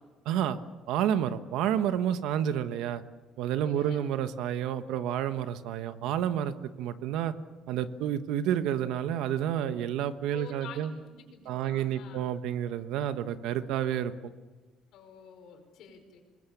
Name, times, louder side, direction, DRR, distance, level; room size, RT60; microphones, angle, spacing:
voice 1, 0.2-0.6 0.9-3.0 3.4-7.3 7.7-10.9 11.5-14.1, right 10 dB, 80° right, 10 dB, 1.2 m, -30 dB
voice 2, 3.6-4.0 10.3-12.2 14.9-16.2, left 6 dB, 65° left, 4 dB, 5.2 m, -48 dB
26.5 x 21.0 x 7.2 m, 1.3 s
cardioid pair, 165°, 0 cm